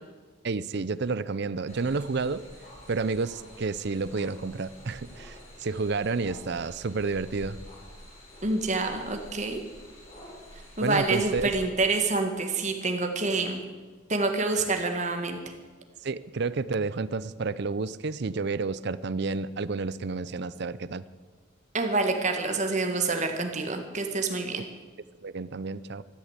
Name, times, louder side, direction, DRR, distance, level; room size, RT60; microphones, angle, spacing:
voice 1, 0.4-2.4 2.9-7.6 10.8-11.5 16.0-21.0 25.2-26.0, right 4 dB, 55° right, 17 dB, 0.5 m, -30 dB
sound 1, 1.7-11.6, equal, 30° left, 4.2 m, -48 dB
voice 2, 8.4-9.6 10.8-13.6 14.1-15.4 21.7-24.7, right 3 dB, 35° right, 4 dB, 1.8 m, -27 dB
13.5 x 12.5 x 8.1 m, 1.4 s
head